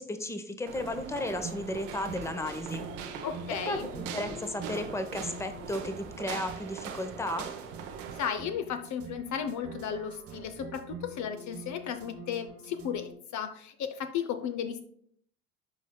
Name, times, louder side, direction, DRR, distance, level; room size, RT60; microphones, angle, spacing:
voice 1, 0.0-2.8 3.6-7.5, left 1 dB, 5° left, 8 dB, 0.8 m, -34 dB
sound 1, 0.7-8.2, right 7 dB, 75° right, 0.9 m, -41 dB
sound 2, 1.0-13.1, right 3 dB, 35° right, 0.9 m, -45 dB
voice 2, 3.2-3.9 8.1-14.8, left 8 dB, 50° left, 8 dB, 0.7 m, -34 dB
12.0 x 4.1 x 2.3 m, 0.63 s
hypercardioid pair, 60°, 38 cm